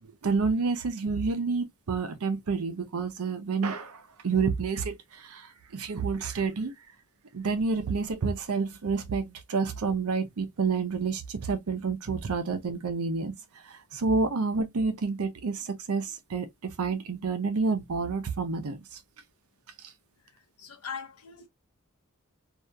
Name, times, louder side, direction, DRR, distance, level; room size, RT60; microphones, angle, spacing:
voice 1, 0.0-6.7 7.3-19.0 19.8-19.9, right 4 dB, 90° right, 0.6 m, -29 dB
voice 2, 20.3-21.5, left 6 dB, 85° left, 0.8 m, -41 dB
2.7 x 2.4 x 2.2 m
head